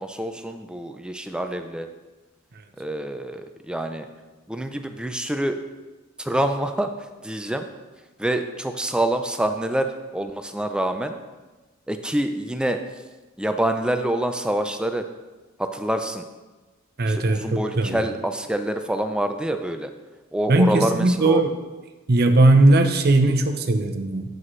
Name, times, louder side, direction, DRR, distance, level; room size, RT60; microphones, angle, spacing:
voice 1, 0.0-1.9 2.8-4.0 4.5-5.6 6.2-6.9 7.2-7.7 8.2-9.9 10.1-11.1 11.9-12.8 13.4-15.0 15.6-16.2 17.1-19.9 20.3-21.4, right 1 dB, 5° right, 6 dB, 0.4 m, -26 dB
voice 2, 17.0-18.0 20.5-21.6 22.1-24.2, right 2 dB, 50° right, 5 dB, 0.8 m, -18 dB
9.9 x 7.7 x 3.2 m, 1.2 s
head